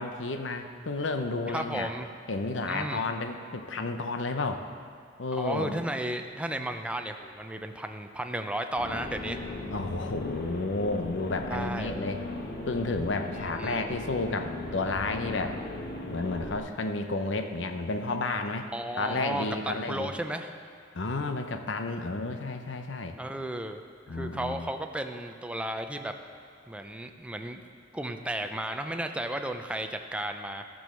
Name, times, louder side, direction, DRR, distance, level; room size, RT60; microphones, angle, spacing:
voice 1, 0.0-1.9 2.3-4.6 5.2-5.8 9.7-12.2 12.6-15.6 16.1-18.7 19.0-20.1 20.9-23.1 24.1-24.7, left 3 dB, 70° left, 6 dB, 0.8 m, -31 dB
voice 2, 1.5-2.1 2.6-3.1 5.3-9.4 11.5-12.0 13.6-13.8 18.7-20.5 23.2-23.8 24.1-26.1 26.7-27.6 27.9-30.6, right 1 dB, 5° right, 6 dB, 0.5 m, -34 dB
sound 1, 8.8-16.6, left 2 dB, 50° left, 1.2 m, -37 dB
13.5 x 6.3 x 6.3 m, 2.2 s
head